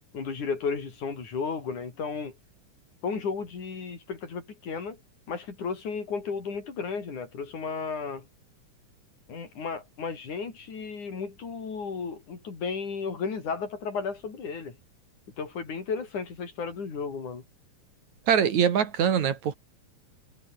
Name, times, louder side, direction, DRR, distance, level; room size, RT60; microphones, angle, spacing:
voice 1, 0.1-2.3 3.0-5.0 5.3-8.3 9.3-14.8 15.4-17.4, left 5 dB, 75° left, 6.0 m, -34 dB
voice 2, 18.3-19.5, right 8 dB, 70° right, 3.5 m, -23 dB
omnidirectional pair, 3.5 m